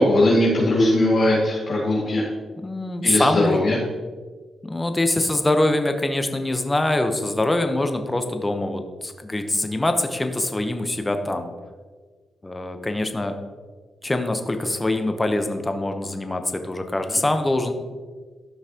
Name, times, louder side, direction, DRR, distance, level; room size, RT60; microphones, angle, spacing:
voice 1, 0.0-2.2 3.0-3.8, left 1 dB, 60° left, -6 dB, 2.2 m, -19 dB
voice 2, 2.6-3.6 4.6-11.5 12.4-13.3 14.0-17.7, left 2 dB, 20° left, 6 dB, 1.0 m, -24 dB
13.5 x 5.7 x 3.0 m, 1.5 s
cardioid pair, 65°, 0 cm